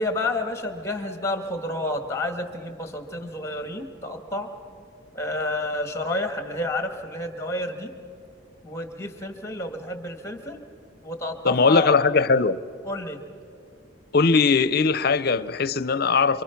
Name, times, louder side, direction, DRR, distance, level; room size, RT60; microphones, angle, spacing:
voice 1, 0.0-4.5 5.1-7.9 8.6-10.6 11.0-12.0 12.9-13.2, left 1 dB, 15° left, 1.8 m, -30 dB
voice 2, 11.4-12.6 14.1-16.4, left 4 dB, 55° left, 0.6 m, -20 dB
27.5 x 24.0 x 5.9 m
head